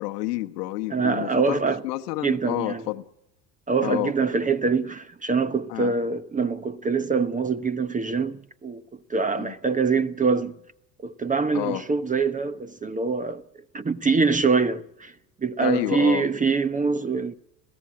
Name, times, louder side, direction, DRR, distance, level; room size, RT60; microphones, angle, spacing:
voice 1, 0.0-3.0 3.8-4.1 5.7-5.9 9.4-9.5 11.5-11.8 15.6-16.2, left 17 dB, 70° left, 1.3 m, -29 dB
voice 2, 0.9-1.8 2.2-2.9 3.7-8.8 9.1-10.6 11.0-13.4 13.7-15.1 15.4-17.4, right 4 dB, 15° right, 0.9 m, -24 dB
22.0 x 15.5 x 10.0 m
hypercardioid pair, 75°, 48 cm